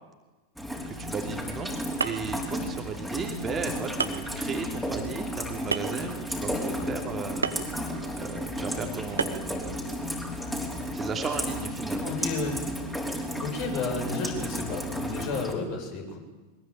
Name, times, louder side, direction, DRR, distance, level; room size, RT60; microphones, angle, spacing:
Rain, 0.6-15.5, equal, 5° left, 5.2 m, -33 dB
voice 1, 0.9-9.9 10.6-12.1, right 5 dB, 20° right, 3 dB, 2.8 m, -36 dB
sound 1, 2.0-2.4 3.2-3.3 4.0-4.3 5.7-6.1 7.4-7.7 9.2-9.5, right 5 dB, 75° right, 1.7 m, -29 dB
voice 2, 12.0-12.6 13.4-16.2, left 3 dB, 45° left, 3 dB, 7.6 m, -32 dB
23.0 x 21.0 x 9.2 m, 1.2 s
figure-of-eight pair, 90°, 0 cm